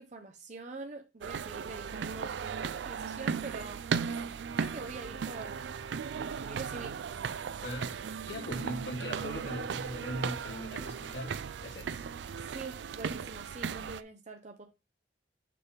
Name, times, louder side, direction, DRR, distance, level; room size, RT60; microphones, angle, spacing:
voice 1, 0.0-3.8 4.6-5.7 6.2-7.0 12.4-14.7, right 3 dB, 45° right, 0.7 m, -44 dB
sound 1, 1.2-14.0, right 6 dB, 85° right, 0.4 m, -37 dB
voice 2, 7.6-12.1, equal, 75° left, 2.6 m, -40 dB
6.7 x 3.4 x 5.1 m
head